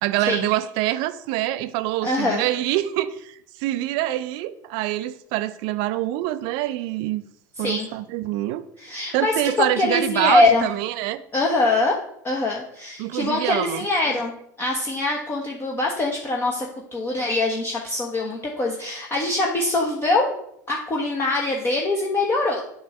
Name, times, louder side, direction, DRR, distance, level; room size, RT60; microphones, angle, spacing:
voice 1, 0.0-7.2 7.6-8.6 9.1-11.2 13.0-13.9, right 15 dB, 55° right, 14 dB, 0.5 m, -25 dB
voice 2, 2.0-2.4 7.6-7.9 8.8-10.6 11.3-12.0 12.2-16.7 16.9-20.3 20.7-22.6, left 2 dB, 25° left, -1 dB, 1.1 m, -23 dB
7.4 x 3.2 x 5.8 m, 0.71 s
hypercardioid pair, 85°, 10 cm